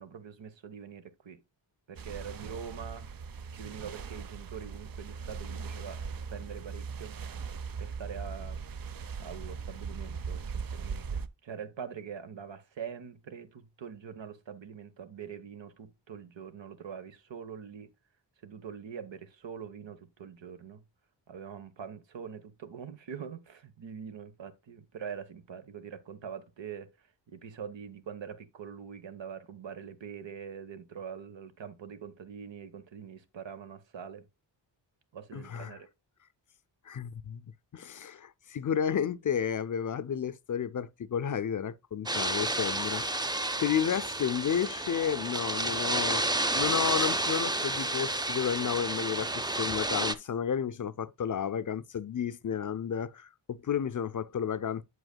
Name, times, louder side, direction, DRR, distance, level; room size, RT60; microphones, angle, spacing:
voice 1, 0.0-1.4 1.9-3.1 3.5-6.0 6.3-7.2 7.8-8.6 9.2-17.9 18.4-20.8 21.3-26.9 27.3-34.3 35.1-35.9, right 7 dB, 85° right, 1.2 m, -44 dB
sound 1, 2.0-11.3, right 5 dB, 50° right, 0.6 m, -39 dB
voice 2, 35.3-35.8 36.9-37.4 37.7-54.8, left 8 dB, 45° left, 0.4 m, -32 dB
sound 2, 42.1-50.1, right 1 dB, 10° right, 0.5 m, -31 dB
8.1 x 7.8 x 2.2 m
wide cardioid pair, 130°, 44 cm